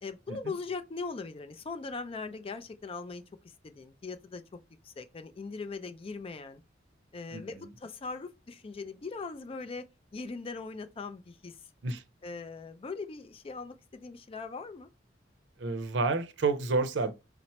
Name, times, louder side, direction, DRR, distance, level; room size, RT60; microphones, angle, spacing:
voice 1, 0.0-4.4 4.8-6.6 7.1-9.8 10.1-11.6 12.2-14.9, left 4 dB, 30° left, 0.4 m, -40 dB
voice 2, 15.6-17.1, right 3 dB, 80° right, 0.6 m, -29 dB
4.3 x 2.0 x 4.2 m
head